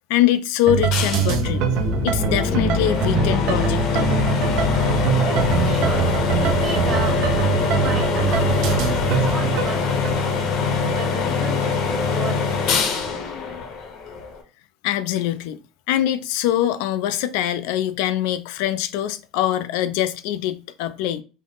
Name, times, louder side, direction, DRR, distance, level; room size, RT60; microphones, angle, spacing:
voice 1, 0.1-1.6 2.0-4.1 14.8-15.6 15.9-21.2, left 12 dB, 75° left, 0.3 m, -23 dB
sound 1, 0.7-10.1, right 6 dB, 60° right, 0.5 m, -23 dB
sound 2, 0.9-14.4, left 5 dB, 55° left, 0.8 m, -23 dB
voice 2, 5.2-6.0 6.3-10.4 10.9-12.5, right 4 dB, 35° right, 1.3 m, -33 dB
3.5 x 2.0 x 3.8 m
cardioid pair, 145°, 0 cm